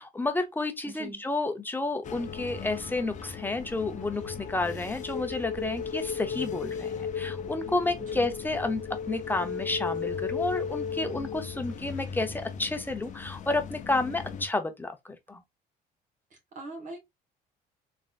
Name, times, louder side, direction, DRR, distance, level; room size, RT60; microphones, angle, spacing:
voice 1, 0.0-15.4, left 2 dB, 10° left, 0.8 m, -31 dB
voice 2, 0.8-1.2 8.0-8.3 16.3-17.0, right 2 dB, 50° right, 1.8 m, -42 dB
sound 1, 2.0-14.5, left 6 dB, 45° left, 0.7 m, -36 dB
3.8 x 3.4 x 2.5 m
cardioid pair, 110°, 17 cm